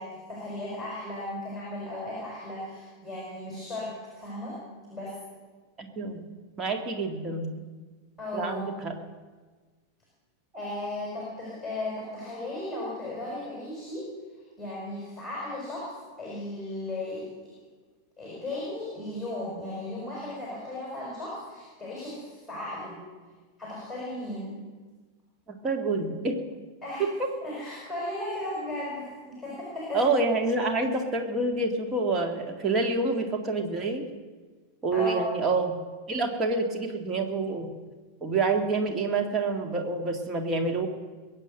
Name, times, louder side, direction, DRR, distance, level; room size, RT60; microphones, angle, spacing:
voice 1, 0.0-4.6 4.9-5.1 8.2-8.7 10.5-14.1 14.6-15.9 16.2-17.3 18.2-23.0 23.6-24.6 26.8-27.0 27.4-30.0 34.9-35.3, left 1 dB, ahead, -5 dB, 5.5 m, -36 dB
voice 2, 5.8-6.3 6.6-7.7 8.3-9.0 25.5-26.4 27.0-27.3 29.9-34.1 34.8-35.8 36.1-37.7 38.2-40.9, right 3 dB, 25° right, 4 dB, 2.1 m, -27 dB
22.5 x 8.8 x 6.6 m, 1.4 s
figure-of-eight pair, 90°, 0 cm